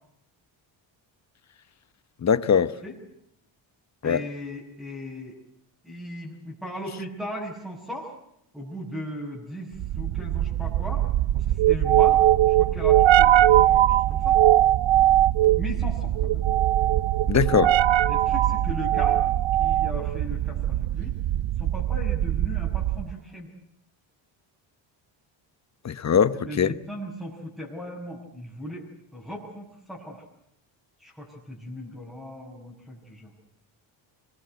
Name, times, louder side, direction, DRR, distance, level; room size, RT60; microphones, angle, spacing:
voice 1, 2.2-2.7 4.0-4.2 17.3-17.8 25.8-26.7, left 7 dB, 35° left, 1.0 m, -21 dB
voice 2, 4.0-5.3 5.8-8.1 8.5-11.1 11.3-14.4 15.6-16.5 18.1-19.2 19.6-21.1 21.6-23.5 26.3-30.2 31.0-33.3, equal, ahead, 6.5 m, -37 dB
sound 1, 9.8-23.1, right 13 dB, 70° right, 0.9 m, -21 dB
25.5 x 22.0 x 7.9 m
cardioid pair, 120°, 48 cm